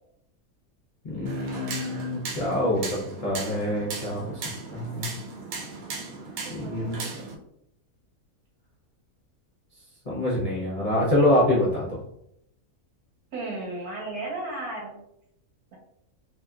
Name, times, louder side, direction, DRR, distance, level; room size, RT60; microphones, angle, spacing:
voice 1, 1.0-4.4 4.7-5.1 6.5-7.0 10.1-12.0, left 1 dB, 50° left, -7 dB, 0.4 m, -25 dB
sound 1, 1.3-7.4, right 4 dB, 75° right, 1.0 m, -37 dB
voice 2, 6.4-7.3 13.3-15.0, right 2 dB, 90° right, -2 dB, 1.4 m, -35 dB
2.9 x 2.6 x 2.3 m, 0.77 s
omnidirectional pair, 1.6 m